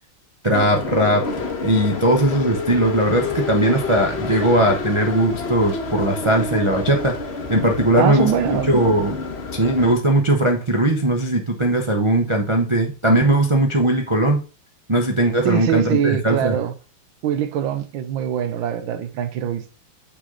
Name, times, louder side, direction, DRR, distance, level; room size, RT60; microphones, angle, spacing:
voice 1, 0.4-1.2 1.6-9.2 9.5-14.4 14.9-16.6, right 1 dB, 50° right, 0.3 m, -19 dB
sound 1, 0.5-9.9, left 4 dB, 40° left, 1.1 m, -28 dB
voice 2, 7.9-8.7 15.4-16.7 17.2-19.7, right 9 dB, 80° right, 1.5 m, -23 dB
6.4 x 6.3 x 3.8 m
omnidirectional pair, 2.1 m